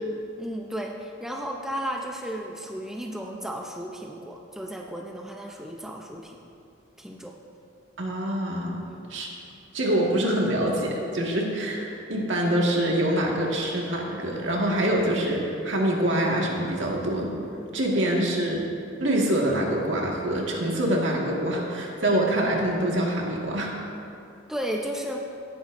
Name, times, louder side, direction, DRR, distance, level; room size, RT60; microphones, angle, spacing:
voice 1, 0.4-6.4 7.0-7.3 8.9-9.1 17.9-18.0 24.5-25.2, equal, ahead, 0 dB, 0.6 m, -34 dB
voice 2, 8.0-8.8 9.1-9.3 9.7-17.3 17.7-18.6 19.0-23.7, right 1 dB, 70° right, -2 dB, 1.8 m, -25 dB
17.5 x 9.3 x 2.6 m, 2.5 s
head